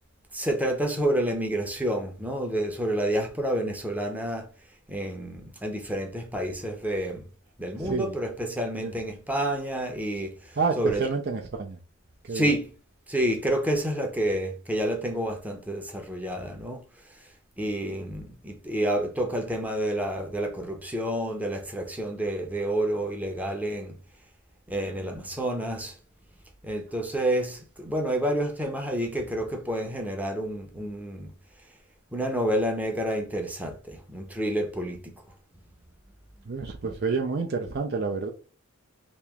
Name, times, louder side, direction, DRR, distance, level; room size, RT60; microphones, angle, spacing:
voice 1, 0.3-4.5 4.9-7.2 7.6-11.1 12.3-12.7 13.1-16.8 17.6-24.0 24.7-25.9 26.6-31.3 32.1-35.1, right 1 dB, 5° right, 0.7 m, -29 dB
voice 2, 7.8-8.1 8.8-8.9 10.6-11.8 12.3-12.5 36.5-38.3, right 4 dB, 50° right, 0.5 m, -28 dB
3.0 x 2.9 x 3.4 m
head